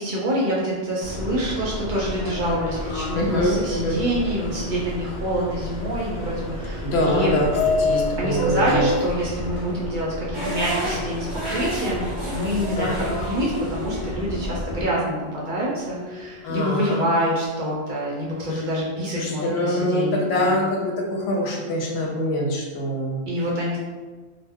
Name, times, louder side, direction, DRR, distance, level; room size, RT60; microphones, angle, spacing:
voice 1, 0.0-7.4 8.2-20.6 23.3-23.8, equal, 60° right, -4 dB, 0.6 m, -26 dB
Subway metro underground, 1.0-14.8, left 1 dB, 55° left, 0.6 m, -30 dB
voice 2, 3.1-4.0 6.8-7.5 7.8-8.9 12.8-12.9 16.4-17.0 19.2-23.2, left 1 dB, 90° left, -1 dB, 0.9 m, -24 dB
sound 1, 10.3-16.4, right 1 dB, 25° right, 0.9 m, -33 dB
2.2 x 2.1 x 3.4 m, 1.3 s
omnidirectional pair, 1.1 m